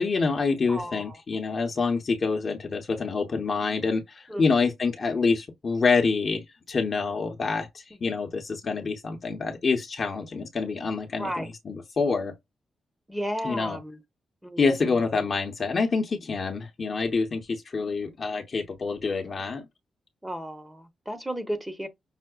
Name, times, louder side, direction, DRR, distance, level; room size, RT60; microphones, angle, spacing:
voice 1, 0.0-12.3 13.4-13.8 14.6-19.6, left 4 dB, 40° left, 0.7 m, -27 dB
voice 2, 0.7-1.2 4.3-4.5 8.0-8.1 11.2-11.5 13.1-14.0 14.4-15.0 20.2-21.9, equal, 5° right, 0.8 m, -34 dB
5.6 x 2.0 x 2.2 m
cardioid pair, 120°, 0 cm